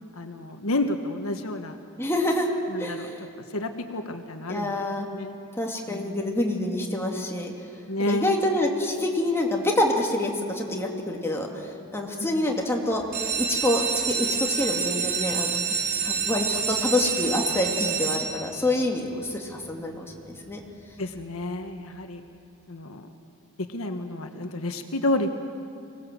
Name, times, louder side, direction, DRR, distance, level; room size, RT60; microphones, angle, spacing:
voice 1, 0.1-1.8 2.7-3.1 3.5-4.9 5.1-5.3 5.9-6.2 7.9-8.3 12.2-12.4 21.0-22.2 22.7-23.1 23.7-25.3, left 2 dB, 85° left, 6 dB, 1.4 m, -30 dB
voice 2, 2.0-2.5 2.8-3.2 4.5-5.1 5.6-7.5 8.1-13.0 13.4-15.6 16.0-20.6, left 1 dB, 10° left, 0 dB, 2.5 m, -27 dB
sound 1, 13.0-18.7 19.4-19.8 20.2-20.3 20.6-20.7 21.1-21.2, right 6 dB, 50° right, 5.0 m, -28 dB
25.0 x 19.0 x 7.8 m, 2.8 s
head